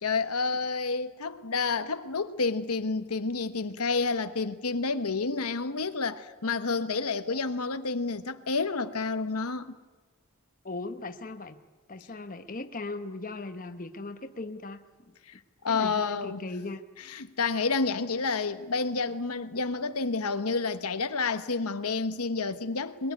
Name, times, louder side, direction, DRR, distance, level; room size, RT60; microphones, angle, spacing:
voice 1, 0.0-9.7 15.6-16.4 17.1-23.1, left 4 dB, 85° left, 1.2 m, -29 dB
voice 2, 10.6-11.6 11.9-15.1 15.7-16.8, left 2 dB, 35° left, 1.1 m, -38 dB
22.0 x 21.5 x 9.5 m
head